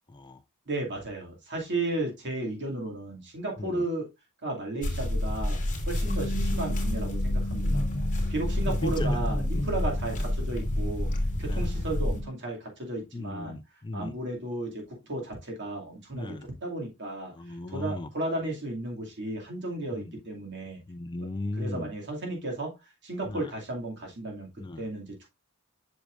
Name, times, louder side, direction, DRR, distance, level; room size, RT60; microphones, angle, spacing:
voice 1, 0.1-0.4 3.6-3.9 6.0-6.2 8.7-9.2 11.5-11.7 13.1-14.2 16.1-16.5 17.3-18.1 19.9-20.1 20.9-21.9 23.3-23.5 24.6-24.8, left 2 dB, 20° left, 0.3 m, -36 dB
voice 2, 0.7-4.1 4.4-5.6 5.9-7.8 8.3-11.1 11.4-13.6 13.9-20.8 21.6-22.7 23.0-24.5 24.8-25.3, right 2 dB, 55° right, 2.4 m, -34 dB
sound 1, 4.8-12.2, left 1 dB, 35° left, 2.5 m, -28 dB
Bass guitar, 6.1-12.3, left 1 dB, 80° left, 1.0 m, -41 dB
8.1 x 6.2 x 2.5 m
head